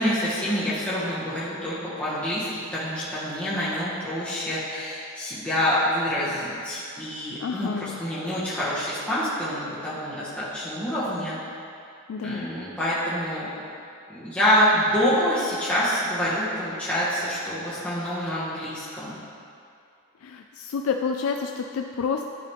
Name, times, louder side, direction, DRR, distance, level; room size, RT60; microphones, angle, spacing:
voice 1, 0.0-11.4 12.2-13.5 14.1-19.1, equal, 5° left, -11 dB, 1.3 m, -26 dB
voice 2, 7.4-8.0 12.1-12.5 20.2-22.3, left 5 dB, 80° left, 4 dB, 0.3 m, -29 dB
11.0 x 3.9 x 3.5 m, 2.5 s
head